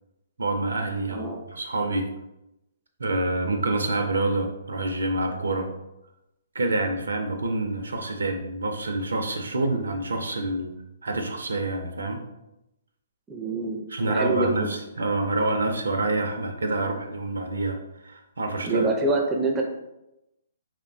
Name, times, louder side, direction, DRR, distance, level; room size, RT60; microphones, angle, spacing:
voice 1, 0.4-2.1 3.0-5.7 6.5-10.8 11.0-12.2 13.9-18.9, right 2 dB, 90° right, 5 dB, 0.4 m, -27 dB
voice 2, 13.3-14.7 18.6-19.6, right 2 dB, 15° right, 1 dB, 0.4 m, -26 dB
3.0 x 2.1 x 2.6 m, 0.90 s
hypercardioid pair, 140°, 0 cm